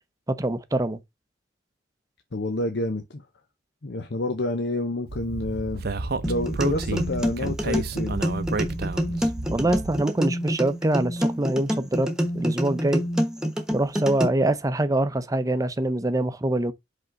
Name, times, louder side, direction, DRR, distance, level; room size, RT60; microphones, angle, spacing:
voice 1, 0.4-1.0 9.5-12.1 12.3-13.0 13.7-16.7, right 1 dB, 20° right, 0.6 m, -24 dB
voice 2, 2.3-3.2 3.8-5.8 6.2-8.2, left 1 dB, 65° left, 0.8 m, -28 dB
Speech, 5.1-10.0, right 3 dB, 60° right, 0.7 m, -30 dB
sound 1, 6.2-14.2, equal, 5° right, 1.2 m, -27 dB
5.4 x 3.8 x 5.1 m
head